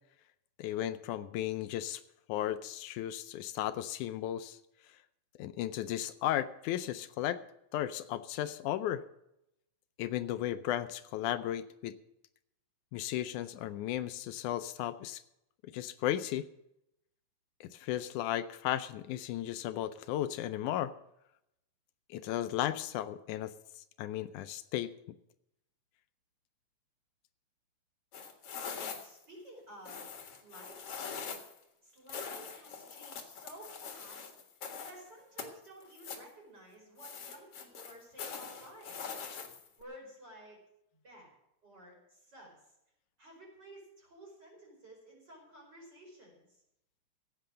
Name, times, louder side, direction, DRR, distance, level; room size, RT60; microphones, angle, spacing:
voice 1, 0.6-2.0 2.3-4.6 5.4-7.4 7.7-9.0 10.0-12.0 12.9-15.2 15.7-16.5 17.6-20.9 22.1-23.5 24.0-24.9, left 12 dB, 80° left, 11 dB, 2.1 m, -35 dB
sound 1, 28.1-29.2 29.8-31.6 32.1-35.0 35.4-36.3 37.0-39.8, left 6 dB, 55° left, 2.5 m, -43 dB
voice 2, 28.7-30.1 30.4-31.4 31.8-34.3 34.7-39.4 39.8-40.6 41.0-41.3 41.6-42.7 43.2-46.6, right 1 dB, 30° right, -1 dB, 5.4 m, -53 dB
16.0 x 8.7 x 6.3 m, 0.83 s
omnidirectional pair, 3.5 m